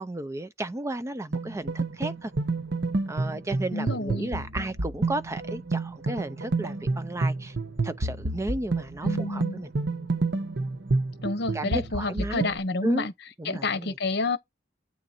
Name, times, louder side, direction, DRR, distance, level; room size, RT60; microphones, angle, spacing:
voice 1, 0.0-2.3 3.1-7.5 7.8-9.7 11.5-12.5 12.8-13.1 13.4-13.9, right 1 dB, 15° right, 0.5 m, -33 dB
sound 1, 1.3-12.6, right 3 dB, 65° right, 0.9 m, -29 dB
voice 2, 3.7-4.3 9.0-9.6 11.2-13.1 13.4-14.4, left 3 dB, 60° left, 1.0 m, -29 dB
8.5 x 3.8 x 4.3 m
head